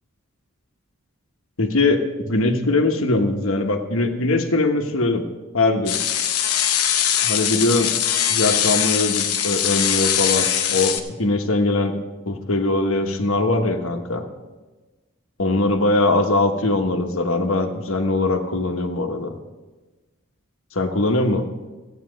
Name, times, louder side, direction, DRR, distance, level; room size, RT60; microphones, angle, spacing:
voice 1, 1.6-5.2 5.5-6.0 7.2-7.9 8.3-11.9 12.3-14.3 15.4-19.3 20.7-21.4, left 2 dB, 65° left, 5 dB, 1.2 m, -21 dB
sound 1, 5.9-11.0, left 10 dB, 85° left, 0.9 m, -21 dB
14.5 x 8.9 x 5.2 m, 1.2 s
head